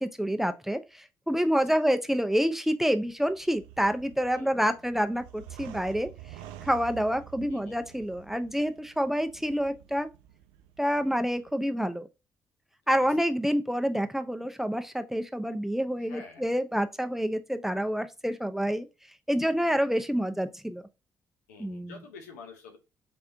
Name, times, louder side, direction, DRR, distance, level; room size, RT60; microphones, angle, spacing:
voice 1, 0.0-6.1 6.6-10.1 10.8-12.1 12.9-18.9 19.3-20.8 21.6-22.0, equal, 5° right, 0.6 m, -28 dB
sound 1, 3.0-11.5, right 13 dB, 80° right, 0.4 m, -49 dB
voice 2, 4.3-4.8 7.5-8.0 13.0-13.1 16.0-16.5 21.5-22.8, left 5 dB, 90° left, 0.8 m, -48 dB
3.5 x 3.4 x 2.6 m
hypercardioid pair, 45°, 9 cm